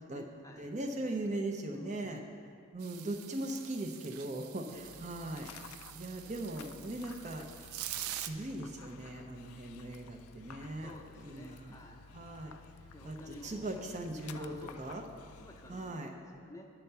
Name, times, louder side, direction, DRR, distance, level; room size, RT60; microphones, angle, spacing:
voice 1, 0.0-0.7 1.7-2.3 4.7-5.3 10.8-12.1 12.9-13.7 14.3-16.7, left 1 dB, 15° left, 2 dB, 0.6 m, -53 dB
voice 2, 0.6-2.2 2.7-7.6 8.1-10.9 11.2-11.8 12.1-12.5 13.0-15.1 15.7-16.1, right 1 dB, 35° right, 3 dB, 0.6 m, -39 dB
sound 1, 2.8-8.3, right 12 dB, 85° right, 0.4 m, -45 dB
Dog, 4.6-15.9, left 5 dB, 90° left, 0.4 m, -53 dB
9.7 x 4.5 x 6.7 m, 2.3 s
head